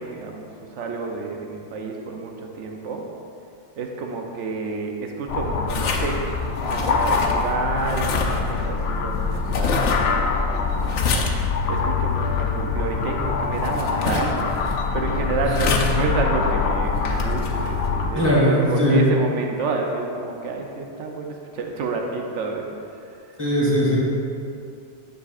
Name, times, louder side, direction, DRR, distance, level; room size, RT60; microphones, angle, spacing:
voice 1, 0.0-3.0 3.8-6.2 6.6-11.0 11.7-22.7 22.9-23.3, right 3 dB, 85° right, 2 dB, 1.0 m, -30 dB
sound 1, 5.3-18.1, left 4 dB, 70° left, 0.8 m, -24 dB
sound 2, 5.7-17.9, left 4 dB, 90° left, 1.1 m, -30 dB
voice 2, 18.1-19.0 23.4-24.0, equal, 20° left, -6 dB, 1.9 m, -19 dB
9.7 x 6.7 x 2.4 m, 2.5 s
omnidirectional pair, 1.2 m